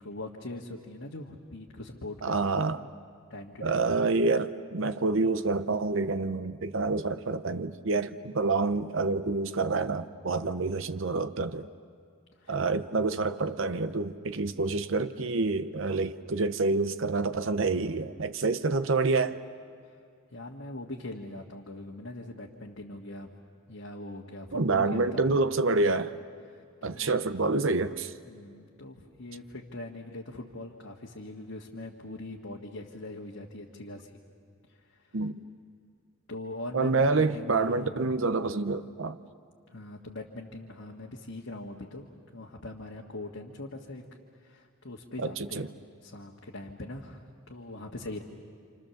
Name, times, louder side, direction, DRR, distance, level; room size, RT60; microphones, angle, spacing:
voice 1, 0.0-2.7 3.3-3.8 12.4-12.6 20.3-23.3 23.7-25.3 26.5-27.2 28.2-34.2 34.7-35.2 36.3-37.9 39.7-44.0 44.4-48.2, left 2 dB, 60° left, -2 dB, 1.7 m, -42 dB
voice 2, 2.2-2.9 3.6-11.7 12.5-19.4 24.5-26.2 26.8-28.1 35.1-35.4 36.7-39.2 45.2-45.7, right 3 dB, 60° right, 11 dB, 0.7 m, -27 dB
29.0 x 28.0 x 7.1 m, 2.3 s
head